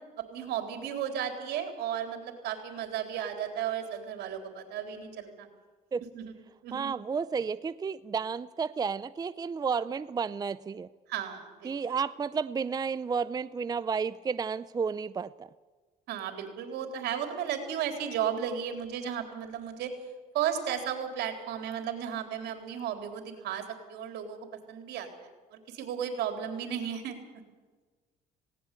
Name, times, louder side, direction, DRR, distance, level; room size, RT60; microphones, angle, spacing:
voice 1, 0.0-5.5 6.1-6.4 6.6-6.9 11.1-11.7 16.1-19.9 20.3-27.2, right 9 dB, 80° right, 5 dB, 3.8 m, -34 dB
voice 2, 6.7-10.9 11.6-15.5, right 5 dB, 25° right, 15 dB, 0.5 m, -32 dB
19.0 x 18.0 x 8.5 m, 1.4 s
cardioid pair, 110°, 17 cm